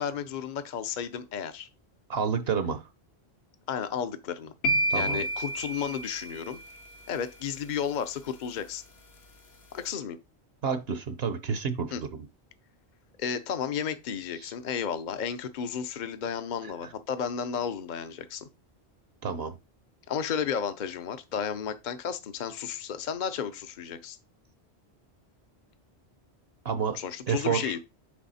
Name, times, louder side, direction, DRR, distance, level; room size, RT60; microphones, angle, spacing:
voice 1, 0.0-1.7 3.7-4.5 4.9-6.6 7.1-8.8 9.7-10.2 11.9-12.0 13.2-18.5 20.1-24.2 26.9-27.8, left 7 dB, 50° left, 0.8 m, -33 dB
voice 2, 2.1-2.8 4.9-5.2 10.6-12.3 14.4-14.5 16.8-16.9 19.2-19.6 26.6-27.0 27.3-27.7, right 6 dB, 65° right, 1.0 m, -29 dB
sound 1, 4.6-6.8, right 1 dB, 70° left, 1.5 m, -29 dB
9.6 x 3.4 x 4.2 m
omnidirectional pair, 1.1 m